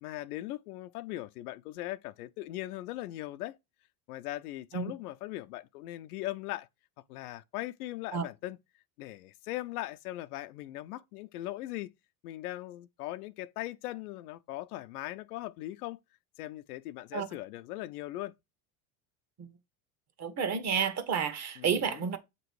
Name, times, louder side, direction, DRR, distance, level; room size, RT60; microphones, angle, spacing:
voice 1, 0.0-3.6 4.1-6.7 7.1-8.6 9.0-11.9 12.2-16.0 16.4-18.3 21.6-22.1, left 16 dB, 85° left, 0.6 m, -39 dB
voice 2, 20.2-22.2, right 6 dB, 35° right, 1.1 m, -30 dB
7.6 x 3.0 x 4.6 m
supercardioid pair, 110°, 44 cm